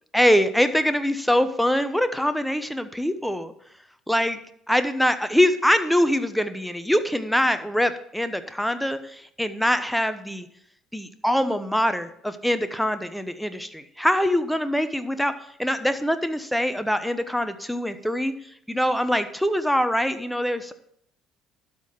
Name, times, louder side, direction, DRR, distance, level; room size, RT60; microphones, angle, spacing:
voice 1, 0.1-3.5 4.1-4.4 4.7-10.5 10.9-15.3 15.6-18.3 18.7-20.7, equal, ahead, 10 dB, 0.9 m, -23 dB
12.0 x 4.3 x 7.6 m, 0.72 s
hypercardioid pair, 55°, 0 cm